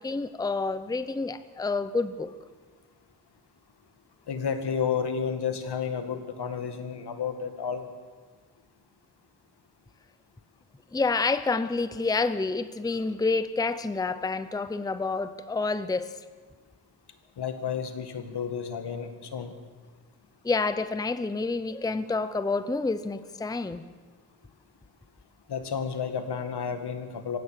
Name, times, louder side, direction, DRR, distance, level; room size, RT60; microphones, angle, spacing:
voice 1, 0.0-2.3 10.9-16.1 20.4-23.9, left 3 dB, 10° left, 13 dB, 0.6 m, -28 dB
voice 2, 4.3-7.8 17.4-19.5 25.5-27.4, left 7 dB, 85° left, 7 dB, 2.1 m, -31 dB
26.0 x 16.0 x 6.6 m, 1.4 s
wide cardioid pair, 165°, 39 cm